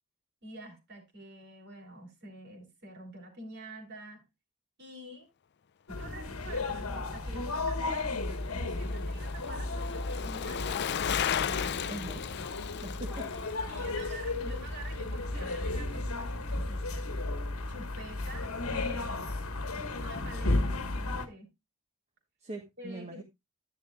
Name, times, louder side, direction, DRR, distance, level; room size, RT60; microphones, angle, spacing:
voice 1, 0.4-4.2 4.8-5.3 5.9-10.8 11.5-12.0 13.7-17.1 17.7-19.1 19.7-21.5 22.8-23.2, right 1 dB, 55° right, 3.4 m, -47 dB
sound 1, 5.9-21.3, left 2 dB, 90° left, 1.3 m, -34 dB
Bicycle, 7.3-15.7 16.0-16.1, left 9 dB, 50° left, 0.4 m, -37 dB
voice 2, 11.9-12.2 12.8-13.3 22.4-23.2, right 2 dB, 30° right, 1.2 m, -41 dB
10.5 x 10.5 x 2.3 m
head